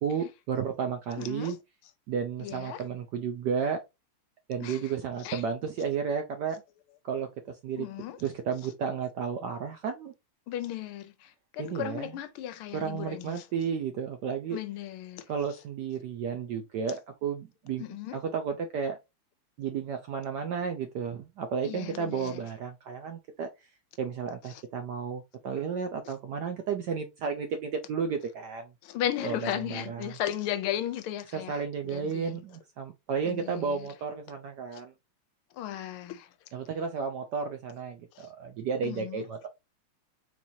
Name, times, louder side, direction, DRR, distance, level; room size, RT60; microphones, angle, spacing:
voice 1, 0.0-1.6 2.1-3.8 4.5-6.6 7.0-7.9 8.2-10.1 11.6-12.1 12.7-14.6 15.3-17.9 18.1-19.0 19.6-23.5 24.0-28.7 29.2-30.1 31.3-34.9 36.5-39.5, right 6 dB, 75° right, 1.0 m, -33 dB
voice 2, 1.2-1.6 2.4-2.8 4.6-4.9 5.2-5.4 7.8-8.2 10.5-13.5 14.5-15.3 17.8-18.2 21.6-22.4 24.5-24.6 26.1-26.2 28.8-32.4 33.2-33.9 34.7-34.8 35.5-36.3 38.1-38.3 38.8-39.2, left 11 dB, 85° left, 1.5 m, -36 dB
4.5 x 4.1 x 2.7 m
omnidirectional pair, 2.4 m